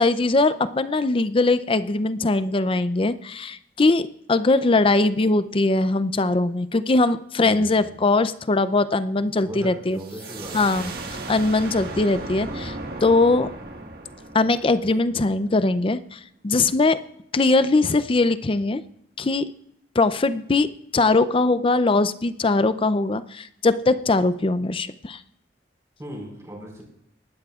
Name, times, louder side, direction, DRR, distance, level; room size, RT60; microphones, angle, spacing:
voice 1, 0.0-10.0 10.5-10.9 11.3-12.7 13.0-13.5 14.3-17.0 17.3-18.8 19.2-19.5 20.0-25.2, left 3 dB, 30° left, 14 dB, 0.5 m, -21 dB
voice 2, 7.4-7.9 9.4-10.9 26.0-26.8, equal, 20° right, -1 dB, 4.9 m, -38 dB
sound 1, 10.0-15.5, right 2 dB, 60° right, 1.7 m, -36 dB
19.5 x 12.5 x 2.4 m, 0.74 s
head